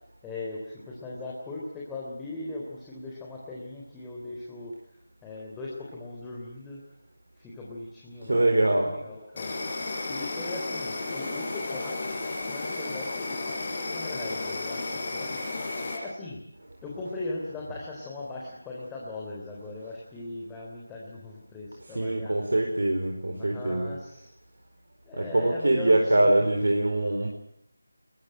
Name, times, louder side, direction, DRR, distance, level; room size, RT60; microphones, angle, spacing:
voice 1, 0.2-4.7 5.2-6.8 7.3-9.5 10.1-12.2 12.4-16.4 16.8-22.4 23.3-24.3 25.0-26.8, left 2 dB, 10° left, -4 dB, 3.4 m, -39 dB
voice 2, 8.2-8.9 17.5-17.6 21.8-23.9 25.1-27.4, right 1 dB, 65° right, 3 dB, 4.5 m, -24 dB
Insect, 9.4-16.0, left 2 dB, 35° left, 7.6 m, -33 dB
22.0 x 21.5 x 9.1 m, 0.74 s
figure-of-eight pair, 165°, 0 cm